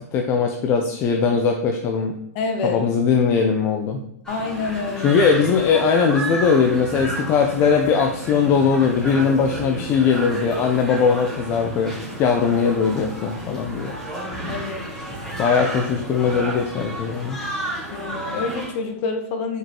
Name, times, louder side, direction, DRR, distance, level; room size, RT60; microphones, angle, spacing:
voice 1, 0.0-2.2 2.6-4.0 5.0-11.9 12.2-13.9 15.4-17.4, left 6 dB, 25° left, 3 dB, 0.6 m, -20 dB
voice 2, 2.3-2.8 4.3-5.2 14.5-14.8 17.9-19.6, left 4 dB, 40° left, 5 dB, 1.2 m, -27 dB
sound 1, 4.3-18.7, right 1 dB, 5° left, 2.2 m, -32 dB
5.4 x 4.7 x 3.8 m, 0.77 s
hypercardioid pair, 140°, 9 cm